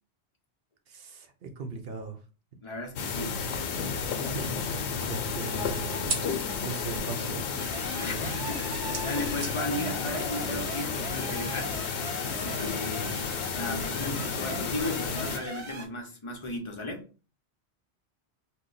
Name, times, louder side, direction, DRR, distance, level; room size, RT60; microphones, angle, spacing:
voice 1, 0.9-2.2 4.2-6.3 6.6-7.6, right 4 dB, 65° right, 0.9 m, -39 dB
voice 2, 2.6-3.4 7.9-11.7 12.3-13.2 13.5-17.1, left 1 dB, 35° left, 0.6 m, -35 dB
sound 1, 3.0-15.4, left 5 dB, 90° left, 0.9 m, -32 dB
sound 2, 3.5-11.9, right 2 dB, 35° right, 0.7 m, -43 dB
sound 3, 7.6-15.9, right 2 dB, 90° right, 1.0 m, -41 dB
2.8 x 2.2 x 3.8 m
omnidirectional pair, 1.1 m